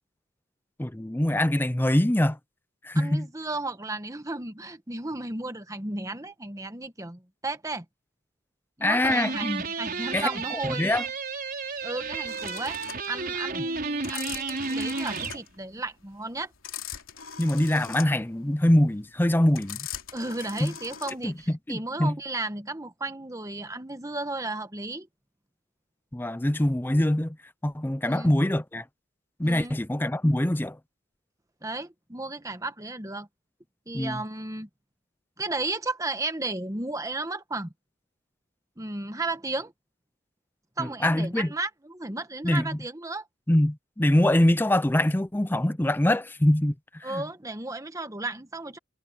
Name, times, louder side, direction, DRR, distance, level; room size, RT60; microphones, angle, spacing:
voice 1, 0.8-2.4 2.8-3.3 8.8-9.6 10.1-11.0 17.4-19.8 20.6-20.7 21.2-22.2 26.1-27.4 27.6-28.8 29.4-30.8 33.9-34.2 40.8-41.5 42.4-42.8 43.5-47.2, left 1 dB, 10° left, 0.6 m, -24 dB
voice 2, 2.9-7.8 8.8-10.9 11.8-12.8 13.1-16.5 20.1-25.1 28.0-28.3 29.4-29.8 31.6-33.3 33.9-34.7 35.4-37.7 38.8-39.7 40.8-43.3 47.0-48.8, right 2 dB, 15° right, 1.3 m, -34 dB
sound 1, 9.0-15.4, right 4 dB, 45° right, 5.9 m, -32 dB
sound 2, 12.3-21.5, left 9 dB, 80° left, 3.0 m, -41 dB
head